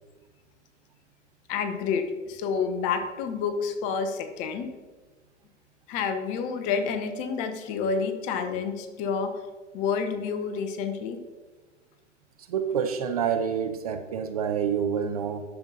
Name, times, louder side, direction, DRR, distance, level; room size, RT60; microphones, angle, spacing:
voice 1, 1.5-4.7 5.9-9.3 9.7-11.2, left 5 dB, 20° left, 7 dB, 0.5 m, -29 dB
voice 2, 12.5-15.5, right 7 dB, 35° right, 7 dB, 0.4 m, -27 dB
10.5 x 6.8 x 2.7 m, 1.3 s
figure-of-eight pair, 100°, 36 cm